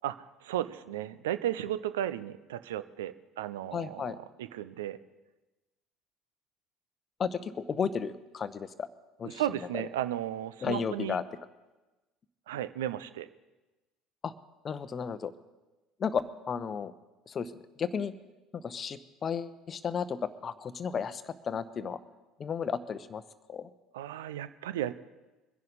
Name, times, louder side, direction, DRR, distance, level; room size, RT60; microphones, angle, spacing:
voice 1, 0.0-4.1 4.4-5.0 9.2-11.2 12.5-13.3 23.9-24.9, right 12 dB, 70° right, 15 dB, 0.5 m, -34 dB
voice 2, 3.7-4.2 7.2-8.7 9.2-9.4 9.7-9.8 10.6-11.2 14.2-14.3 14.6-15.3 16.0-16.9 17.3-17.5 17.8-18.1 18.5-22.0 22.4-23.2 23.5-23.7, left 6 dB, 35° left, 14 dB, 0.7 m, -33 dB
23.0 x 10.5 x 4.1 m, 1.1 s
figure-of-eight pair, 60°, 0 cm